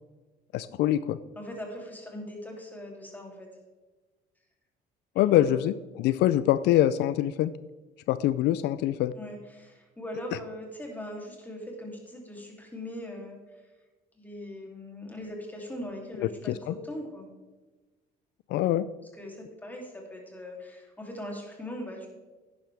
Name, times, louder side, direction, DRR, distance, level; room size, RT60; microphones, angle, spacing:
voice 1, 0.5-1.2 5.2-7.5 8.1-9.1 16.2-16.7 18.5-18.9, left 13 dB, 80° left, 15 dB, 0.4 m, -24 dB
voice 2, 1.4-3.5 5.2-5.7 6.1-6.2 9.2-13.4 14.1-16.5 16.8-17.3 19.2-22.1, left 1 dB, 10° left, 0 dB, 2.9 m, -40 dB
10.5 x 10.5 x 3.4 m, 1.2 s
cardioid pair, 110°, 17 cm